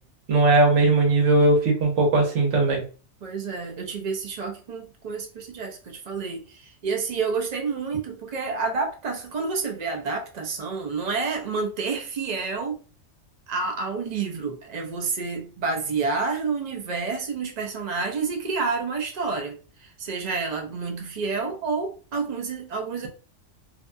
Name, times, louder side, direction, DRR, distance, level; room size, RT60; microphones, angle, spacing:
voice 1, 0.3-2.8, right 2 dB, 75° right, 1.2 m, -19 dB
voice 2, 3.2-12.8 13.5-23.1, right 4 dB, 45° right, 0.6 m, -29 dB
2.7 x 2.2 x 2.5 m
omnidirectional pair, 1.3 m